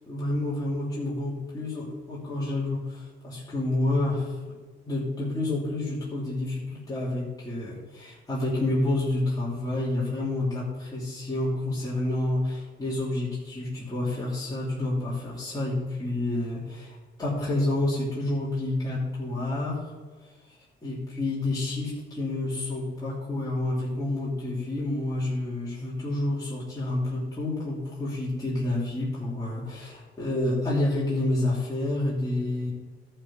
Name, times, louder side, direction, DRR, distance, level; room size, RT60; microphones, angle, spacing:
voice 1, 0.1-4.4 4.9-19.8 20.8-32.7, left 2 dB, 20° left, -7 dB, 3.0 m, -29 dB
11.5 x 4.6 x 7.8 m, 1.4 s
cardioid pair, 90°, 20 cm